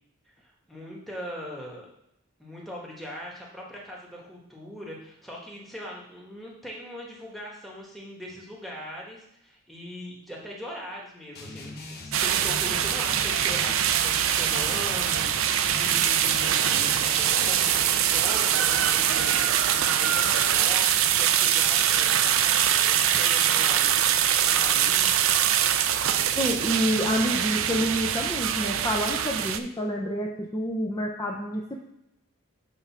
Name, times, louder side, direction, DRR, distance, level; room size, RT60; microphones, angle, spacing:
voice 1, 0.4-1.9 2.4-24.3 24.5-25.3, equal, ahead, -3 dB, 1.4 m, -40 dB
sound 1, 11.3-17.9, left 2 dB, 45° left, 0.9 m, -41 dB
sound 2, 12.1-29.6, right 10 dB, 70° right, 0.4 m, -23 dB
voice 2, 26.3-31.8, equal, 15° left, -1 dB, 0.6 m, -28 dB
7.8 x 3.5 x 5.7 m, 0.81 s
head